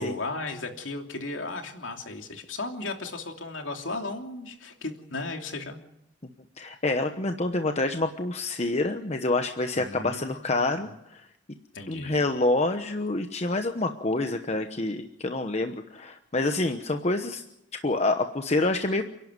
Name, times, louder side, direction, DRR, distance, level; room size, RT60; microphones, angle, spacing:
voice 1, 0.0-5.8 9.7-10.6 11.7-12.2, left 2 dB, 85° left, 4 dB, 2.9 m, -35 dB
voice 2, 6.6-11.2 11.9-17.4 17.7-19.0, left 2 dB, 35° left, 6 dB, 1.0 m, -27 dB
29.0 x 11.5 x 9.6 m, 0.82 s
head